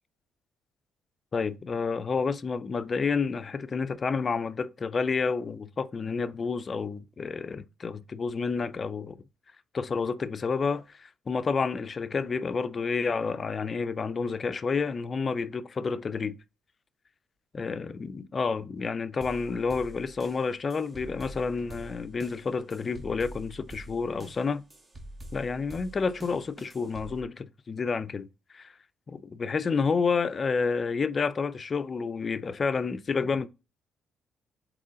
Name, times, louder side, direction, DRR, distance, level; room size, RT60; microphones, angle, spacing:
voice 1, 1.3-9.2 9.7-16.4 17.5-24.6 25.3-28.3 28.5-28.7 29.1-33.5, left 5 dB, 40° left, 0.3 m, -30 dB
sound 1, 19.2-27.2, right 1 dB, 30° right, 0.9 m, -46 dB
3.8 x 3.0 x 3.6 m
cardioid pair, 90°, 0 cm